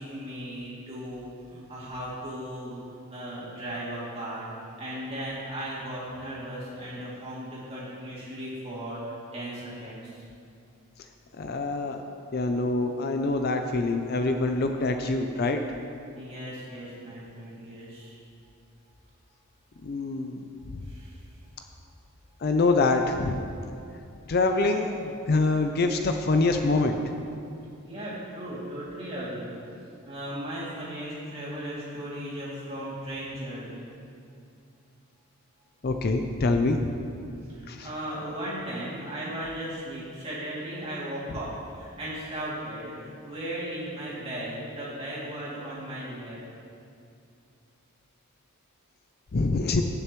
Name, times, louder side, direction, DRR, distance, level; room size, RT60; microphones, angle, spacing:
voice 1, 0.0-2.8 3.1-4.5 4.8-10.3 16.1-18.2 20.8-21.2 27.8-29.6 30.0-33.9 37.5-46.4, right 1 dB, 25° right, -8 dB, 2.6 m, -36 dB
voice 2, 11.4-12.0 12.3-15.6 19.8-20.4 22.4-23.5 24.3-27.0 35.8-36.9 37.7-37.9 49.3-49.8, left 3 dB, 45° left, 6 dB, 0.4 m, -25 dB
18.0 x 6.6 x 3.1 m, 2.5 s
head